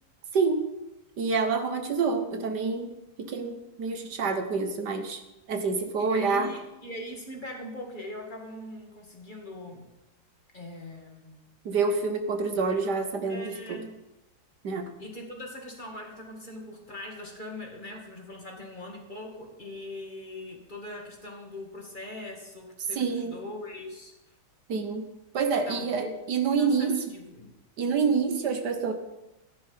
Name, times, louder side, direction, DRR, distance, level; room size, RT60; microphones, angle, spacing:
voice 1, 0.3-0.7 1.2-5.2 5.5-6.5 11.7-13.8 14.6-15.0 22.9-23.4 24.7-27.0 27.8-28.9, right 5 dB, 70° right, 7 dB, 1.8 m, -27 dB
voice 2, 6.0-9.9 10.5-11.5 13.3-14.0 15.0-24.1 25.7-26.2 26.6-27.5 28.1-28.2, left 1 dB, 25° left, 1 dB, 2.3 m, -41 dB
14.5 x 10.0 x 5.7 m, 0.95 s
omnidirectional pair, 1.9 m